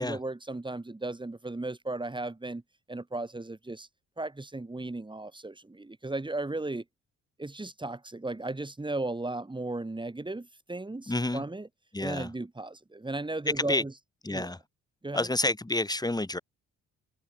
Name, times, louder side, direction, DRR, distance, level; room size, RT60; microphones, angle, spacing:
voice 1, 0.0-2.6 2.9-3.9 4.2-6.8 7.4-11.7 12.0-13.9 14.3-14.5 15.0-15.3, right 2 dB, 15° right, 5.9 m, -35 dB
voice 2, 11.1-11.4 11.9-12.3 13.6-13.8 14.2-14.6 15.1-16.4, left 2 dB, 15° left, 6.7 m, -29 dB
cardioid pair, 90°, 30 cm